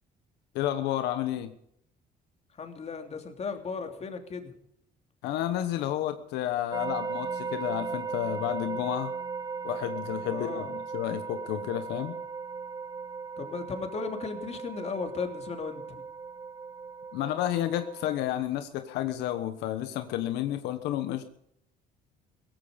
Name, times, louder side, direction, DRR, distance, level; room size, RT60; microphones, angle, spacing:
voice 1, 0.5-1.5 5.2-9.1 9.6-12.2 17.1-21.2, left 12 dB, 90° left, 9 dB, 1.2 m, -31 dB
voice 2, 2.5-4.5 10.3-10.7 13.4-16.0, left 5 dB, 40° left, 5 dB, 3.1 m, -36 dB
sound 1, 6.7-18.2, right 5 dB, 20° right, 0.7 m, -37 dB
17.0 x 15.5 x 5.2 m, 0.74 s
cardioid pair, 110°, 17 cm